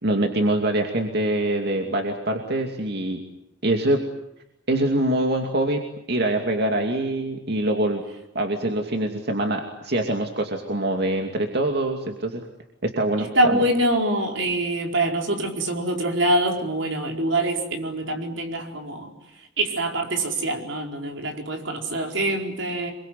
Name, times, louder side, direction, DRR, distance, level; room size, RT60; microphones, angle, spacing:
voice 1, 0.0-3.2 3.6-4.0 4.7-5.8 6.1-8.0 8.3-12.4 12.8-13.6, right 1 dB, 60° right, 3 dB, 2.6 m, -24 dB
voice 2, 13.2-19.1 19.6-22.9, right 1 dB, 85° right, 2 dB, 4.7 m, -24 dB
27.5 x 23.5 x 9.3 m, 0.84 s
head